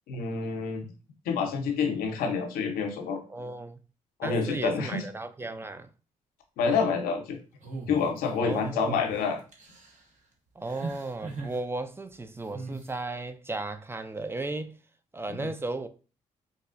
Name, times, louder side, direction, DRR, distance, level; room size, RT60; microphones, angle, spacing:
voice 1, 0.1-0.9 1.3-3.2 4.2-5.0 6.6-7.4 7.9-9.4 15.3-15.5, left 5 dB, 85° left, 0.7 m, -28 dB
voice 2, 3.3-3.8 4.2-5.9 8.4-9.1 10.6-14.8 15.1-15.9, right 2 dB, 15° right, 0.4 m, -35 dB
sound 1, 7.6-8.5 8.9-9.2 9.5-10.0 10.7-11.6 12.5-12.9, right 3 dB, 55° right, 1.0 m, -39 dB
3.8 x 2.4 x 2.5 m
supercardioid pair, 55°, 15 cm